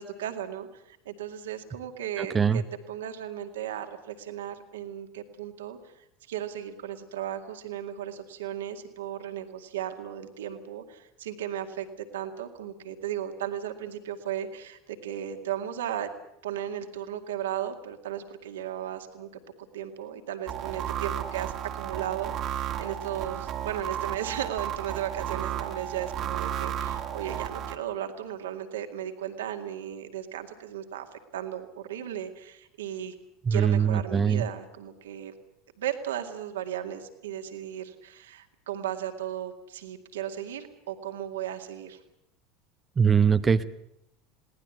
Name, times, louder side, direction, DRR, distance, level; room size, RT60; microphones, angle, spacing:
voice 1, 0.0-2.6 2.9-5.8 6.3-16.1 16.4-31.1 31.3-33.1 33.5-35.3 35.8-42.0, right 10 dB, 70° right, 6 dB, 2.1 m, -36 dB
voice 2, 2.2-2.6 33.4-34.5 43.0-43.6, right 6 dB, 25° right, 11 dB, 0.9 m, -22 dB
sound 1, 20.5-27.8, right 10 dB, 45° right, 2.0 m, -33 dB
21.0 x 18.0 x 8.4 m, 0.80 s
figure-of-eight pair, 75°, 0 cm